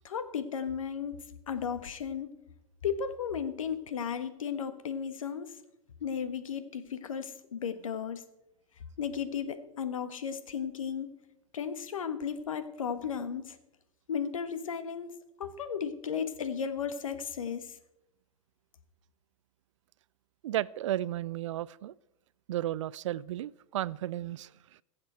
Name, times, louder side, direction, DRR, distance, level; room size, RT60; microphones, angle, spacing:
voice 1, 0.0-1.2 1.5-2.3 2.8-5.6 6.0-8.2 9.0-11.1 11.5-13.6 14.1-15.1 15.4-17.8, left 7 dB, 75° left, 10 dB, 1.3 m, -35 dB
voice 2, 20.4-21.9 22.5-24.8, right 13 dB, 60° right, 22 dB, 0.4 m, -34 dB
21.5 x 7.5 x 4.5 m, 0.88 s
figure-of-eight pair, 100°, 17 cm